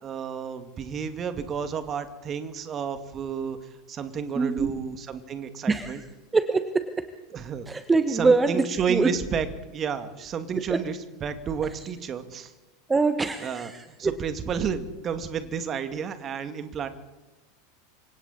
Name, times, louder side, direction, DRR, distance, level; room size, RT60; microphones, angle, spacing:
voice 1, 0.0-3.6 3.9-6.0 7.3-7.7 8.1-9.5 9.7-12.5 13.4-13.7 14.0-16.9, right 7 dB, 30° right, 9 dB, 2.4 m, -31 dB
voice 2, 4.4-4.8 5.7-6.0 6.3-7.1 7.7-9.1 10.7-10.8 12.9-14.1, right 4 dB, 15° right, 10 dB, 1.3 m, -24 dB
30.0 x 25.5 x 4.4 m, 1.1 s
figure-of-eight pair, 85°, 0 cm